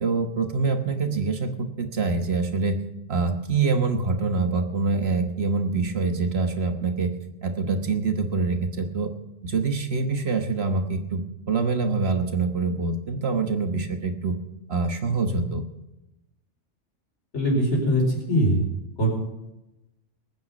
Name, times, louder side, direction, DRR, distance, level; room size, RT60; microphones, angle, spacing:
voice 1, 0.0-2.8 3.1-7.1 7.4-9.1 9.4-14.4 14.7-15.6, right 4 dB, 55° right, 6 dB, 1.4 m, -25 dB
voice 2, 17.3-18.6 19.0-19.1, equal, 70° left, 0 dB, 5.0 m, -21 dB
20.5 x 9.5 x 5.1 m, 0.93 s
omnidirectional pair, 1.3 m